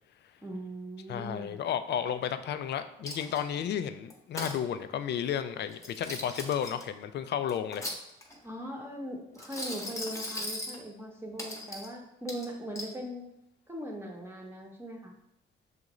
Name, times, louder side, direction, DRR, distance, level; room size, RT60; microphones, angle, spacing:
voice 1, 0.4-1.6 8.4-13.2 13.7-15.1, equal, 10° right, 1 dB, 0.9 m, -40 dB
voice 2, 1.1-7.9, left 9 dB, 60° left, 11 dB, 0.4 m, -32 dB
Coin (dropping), 3.0-3.6 4.1-4.6 5.7-6.8 7.5-8.4 9.3-10.8 11.4-11.9 12.3-12.9, left 1 dB, 15° left, 1.0 m, -38 dB
6.4 x 2.5 x 3.0 m, 0.81 s
cardioid pair, 90°, 20 cm